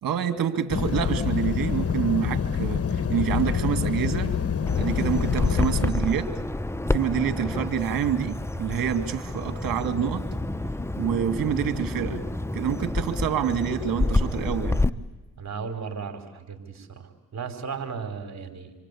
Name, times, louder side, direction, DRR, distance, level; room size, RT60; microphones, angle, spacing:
voice 1, 0.0-4.3 4.8-6.3 6.8-10.3 11.0-12.2 12.5-14.8, right 8 dB, 65° right, 9 dB, 2.4 m, -27 dB
sound 1, 0.7-5.9, left 7 dB, 40° left, 2.0 m, -26 dB
Bird vocalization bird call bird song, 4.7-14.9, left 2 dB, 5° left, 1.0 m, -29 dB
voice 2, 15.4-18.7, right 5 dB, 45° right, 7 dB, 5.0 m, -35 dB
28.0 x 24.5 x 8.6 m, 1.1 s
supercardioid pair, 60°, 37 cm